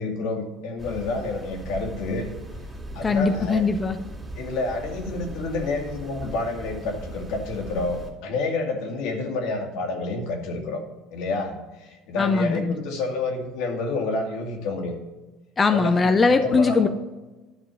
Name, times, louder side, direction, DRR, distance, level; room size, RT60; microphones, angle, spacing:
voice 1, 0.0-2.3 2.9-3.6 4.4-10.8 11.1-11.6 12.1-14.9 15.7-16.1 16.4-16.9, left 3 dB, 75° left, 2 dB, 2.2 m, -29 dB
sound 1, 0.8-8.1, right 1 dB, 10° right, 2.5 m, -38 dB
voice 2, 3.0-4.0 12.2-12.8 15.6-16.9, left 4 dB, 20° left, 7 dB, 0.6 m, -20 dB
11.5 x 5.3 x 7.0 m, 1.1 s
cardioid pair, 135°, 0 cm